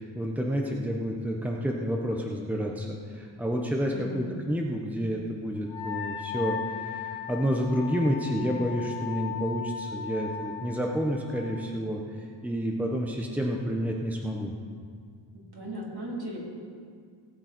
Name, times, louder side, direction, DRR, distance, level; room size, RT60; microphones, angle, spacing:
voice 1, 0.0-12.0 12.4-14.5, equal, 5° right, 0 dB, 1.3 m, -29 dB
voice 2, 3.9-4.3 15.5-16.4, right 1 dB, 55° right, -4 dB, 4.0 m, -36 dB
Wind instrument woodwind instrument, 5.7-11.3, left 8 dB, 75° left, 1.9 m, -37 dB
19.0 x 7.7 x 4.5 m, 2.1 s
cardioid pair, 65°, 47 cm